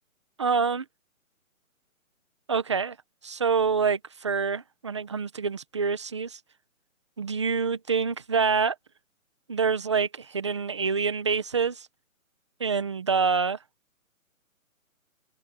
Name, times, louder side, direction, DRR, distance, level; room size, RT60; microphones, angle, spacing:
voice 1, 0.4-0.8 2.5-3.0 3.2-6.4 7.2-8.7 9.5-11.9 12.6-13.6, right 5 dB, 20° right, 1.1 m, -26 dB
hypercardioid pair, 175°, 42 cm